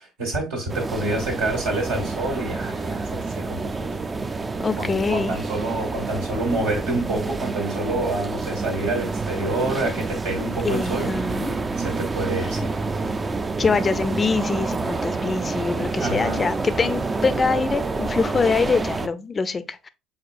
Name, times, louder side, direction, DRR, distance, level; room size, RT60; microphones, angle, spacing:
voice 1, 0.2-4.0 4.8-12.8 16.0-16.5, right 2 dB, 80° right, 1.8 m, -28 dB
sound 1, 0.7-19.1, right 3 dB, 25° right, 0.4 m, -28 dB
voice 2, 4.6-5.4 10.6-11.6 13.6-19.9, left 4 dB, 30° left, 0.4 m, -24 dB
5.1 x 3.8 x 2.5 m
hypercardioid pair, 65°, 0 cm